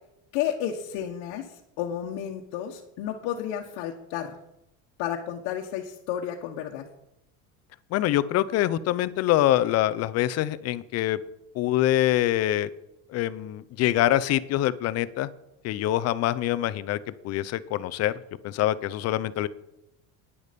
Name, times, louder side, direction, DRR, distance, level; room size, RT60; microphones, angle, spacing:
voice 1, 0.3-1.5 1.8-4.3 5.0-6.8, left 10 dB, 75° left, 0 dB, 1.3 m, -31 dB
voice 2, 7.9-11.2 11.6-12.7 13.1-15.3 15.6-17.0 17.2-18.1 18.4-19.5, left 13 dB, 40° left, 15 dB, 0.6 m, -24 dB
11.0 x 10.0 x 5.2 m, 0.86 s
cardioid pair, 165°, 38 cm